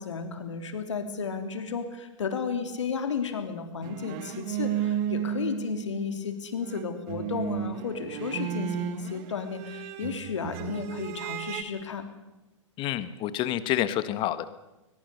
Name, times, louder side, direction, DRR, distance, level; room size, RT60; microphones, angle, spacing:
voice 1, 0.0-12.0, left 5 dB, 65° left, 7 dB, 3.4 m, -33 dB
sound 1, 3.8-6.3 6.6-11.6, right 10 dB, 40° right, 1.5 m, -33 dB
voice 2, 12.8-14.5, left 13 dB, 30° left, 14 dB, 1.5 m, -28 dB
21.5 x 21.5 x 6.8 m, 1.0 s
figure-of-eight pair, 110°, 16 cm